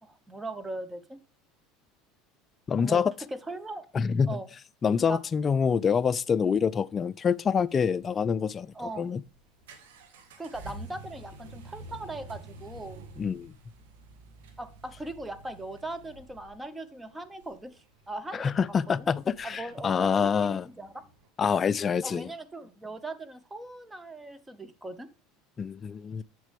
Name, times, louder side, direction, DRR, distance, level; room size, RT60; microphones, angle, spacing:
voice 1, 0.0-1.2 2.8-3.0 3.3-3.9 4.3-4.5 5.1-5.2 8.7-9.1 10.4-13.0 14.6-18.5 18.9-19.1 19.4-21.1 22.0-25.1, right 2 dB, 10° right, 0.8 m, -39 dB
voice 2, 2.7-3.1 3.9-4.4 4.8-9.2 13.2-13.5 18.3-20.7 21.4-22.3 25.6-26.2, left 6 dB, 30° left, 0.3 m, -26 dB
sound 1, 7.4-21.3, right 2 dB, 85° right, 1.5 m, -49 dB
7.4 x 6.2 x 3.4 m
supercardioid pair, 105°, 0 cm